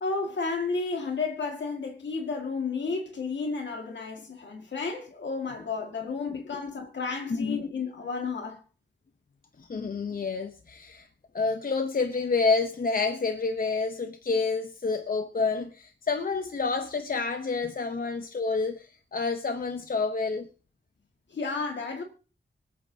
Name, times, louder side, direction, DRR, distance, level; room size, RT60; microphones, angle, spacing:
voice 1, 0.0-8.6 18.0-18.1 21.3-22.0, left 4 dB, 75° left, 1.9 m, -32 dB
voice 2, 7.3-7.6 9.6-11.1 11.3-20.5, left 4 dB, 50° left, 0.8 m, -28 dB
25.5 x 8.6 x 2.7 m
wide cardioid pair, 125°, 19 cm